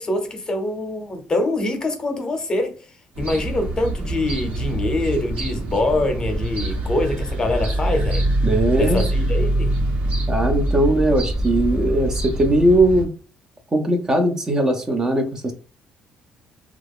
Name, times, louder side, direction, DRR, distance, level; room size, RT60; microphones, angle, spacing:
voice 1, 0.0-2.7 3.2-8.2 8.8-9.7, left 2 dB, 25° left, 0.7 m, -24 dB
sound 1, 3.1-13.0, right 1 dB, 70° right, 1.1 m, -24 dB
voice 2, 8.4-9.0 10.3-13.1 13.7-15.5, right 1 dB, 20° right, 0.5 m, -19 dB
2.9 x 2.3 x 3.5 m
cardioid pair, 120°, 3 cm